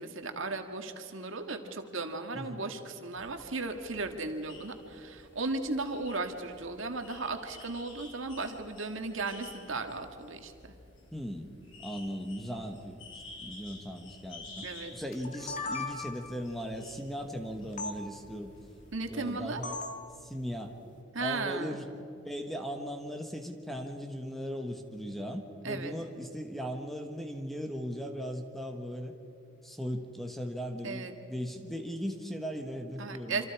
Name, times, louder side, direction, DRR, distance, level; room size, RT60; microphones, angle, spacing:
voice 1, 0.0-10.5 14.6-14.9 18.9-19.6 21.1-21.8 25.6-25.9 30.8-31.1 33.0-33.5, right 3 dB, 70° right, 5 dB, 1.8 m, -36 dB
sound 1, 3.1-19.8, left 2 dB, 70° left, 4.1 m, -52 dB
voice 2, 11.1-11.5 11.8-13.0 13.4-14.6 14.9-18.5 19.1-19.8 20.2-20.8 21.2-21.9 22.2-29.1 29.6-33.5, equal, ahead, 4 dB, 1.4 m, -38 dB
sound 2, 15.1-16.4 17.8-17.9 19.6-20.0, left 3 dB, 40° left, 1.7 m, -37 dB
26.5 x 26.5 x 4.8 m, 2.7 s
head